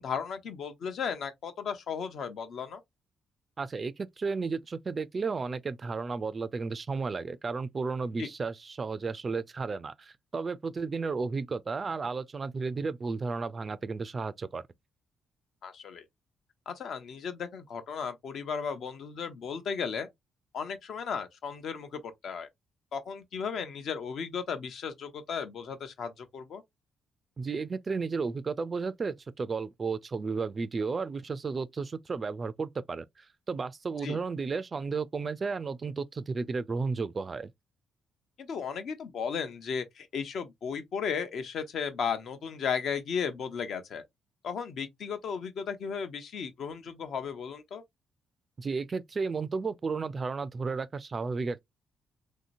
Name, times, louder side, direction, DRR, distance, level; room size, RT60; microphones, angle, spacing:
voice 1, 0.0-2.8 8.2-8.3 15.6-16.0 16.7-20.1 20.5-22.5 22.9-26.6 34.0-34.2 38.4-44.0 44.4-47.8, left 6 dB, 65° left, 0.7 m, -35 dB
voice 2, 3.6-14.6 27.4-37.5 48.6-51.6, right 4 dB, 35° right, 0.3 m, -33 dB
3.1 x 2.8 x 2.6 m
cardioid pair, 90°, 0 cm